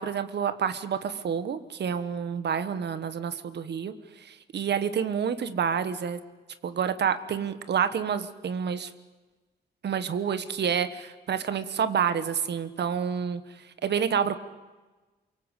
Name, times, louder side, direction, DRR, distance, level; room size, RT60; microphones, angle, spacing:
voice 1, 0.0-6.2 6.6-8.9 9.8-13.4 13.8-14.3, right 7 dB, 75° right, 11 dB, 1.5 m, -28 dB
28.5 x 23.5 x 8.3 m, 1.2 s
wide cardioid pair, 175°, 18 cm